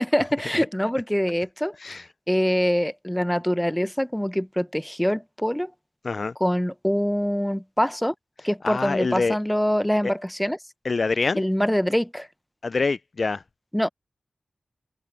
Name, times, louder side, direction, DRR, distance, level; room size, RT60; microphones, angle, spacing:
voice 1, 0.0-2.0 2.3-5.7 6.4-8.1 8.4-10.6 11.4-12.3 13.7-13.9, equal, 5° left, 0.7 m, -24 dB
voice 2, 8.6-9.4 10.0-10.1 10.8-11.4 12.6-13.4, left 4 dB, 50° left, 0.3 m, -25 dB
wide cardioid pair, 90°, 0 cm